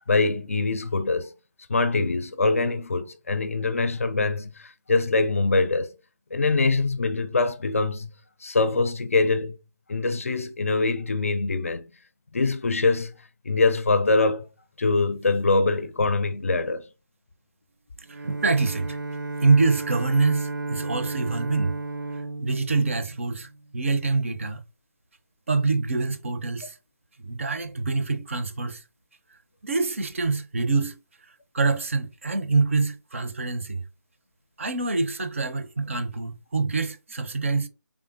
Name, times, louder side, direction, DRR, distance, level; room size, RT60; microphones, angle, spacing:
voice 1, 0.1-1.3 1.7-5.9 6.3-8.1 8.4-9.6 9.9-11.9 12.3-13.2 13.4-14.5 14.8-16.9, left 3 dB, 45° left, 0.5 m, -23 dB
voice 2, 18.1-19.0 19.4-21.7 22.4-24.6 25.5-26.8 27.2-28.8 29.6-31.0 31.5-33.8 34.6-37.7, right 3 dB, 40° right, 0.6 m, -25 dB
Bowed string instrument, 18.1-23.7, right 3 dB, 85° right, 0.5 m, -34 dB
3.6 x 3.4 x 2.5 m
figure-of-eight pair, 160°, 10 cm